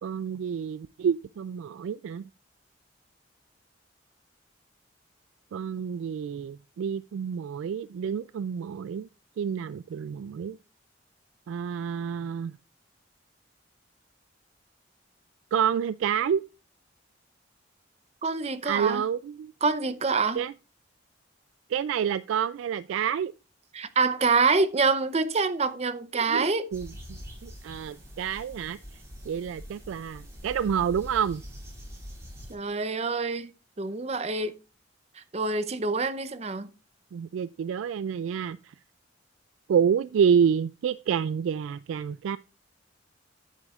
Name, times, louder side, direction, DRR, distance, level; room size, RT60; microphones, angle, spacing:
voice 1, 0.0-2.2 5.5-9.1 9.4-10.6 11.5-12.5 15.5-16.4 18.6-19.5 20.4-20.5 21.7-23.3 26.1-28.8 29.3-31.4 37.1-38.7 39.7-42.4, right 7 dB, 90° right, 0.3 m, -28 dB
voice 2, 18.2-19.0 19.6-20.4 23.7-26.7 32.5-33.5 33.8-34.5 35.2-36.7, right 4 dB, 35° right, 0.6 m, -26 dB
sound 1, 26.7-32.5, equal, 15° right, 3.8 m, -44 dB
9.8 x 9.2 x 2.4 m
head